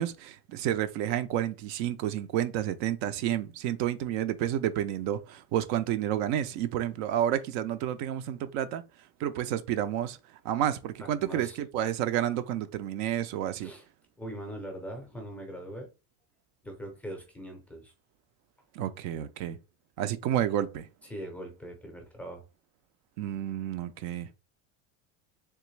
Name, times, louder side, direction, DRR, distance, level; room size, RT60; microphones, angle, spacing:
voice 1, 0.0-8.8 9.2-10.2 10.4-13.7 18.8-19.6 20.0-20.9 23.2-24.4, right 11 dB, 65° right, 0.5 m, -30 dB
voice 2, 11.0-11.6 13.6-13.9 14.2-15.9 16.6-17.9 21.0-22.4, right 1 dB, 5° left, 0.5 m, -41 dB
3.4 x 3.0 x 3.2 m
cardioid pair, 175°, 35 cm